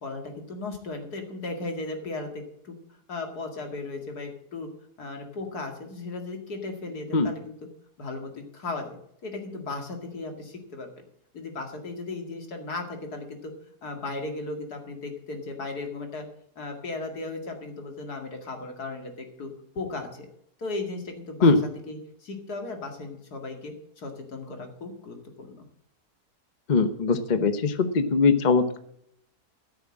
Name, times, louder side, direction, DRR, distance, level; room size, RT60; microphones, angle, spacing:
voice 1, 0.0-4.7 5.0-7.6 8.0-9.0 9.2-11.0 11.3-13.5 13.8-16.3 16.6-19.5 19.8-20.3 20.6-21.5 21.9-25.6, left 3 dB, 75° left, 4 dB, 2.7 m, -36 dB
voice 2, 26.7-28.8, left 4 dB, 35° left, 10 dB, 0.9 m, -21 dB
13.5 x 7.1 x 7.4 m, 0.70 s
omnidirectional pair, 1.7 m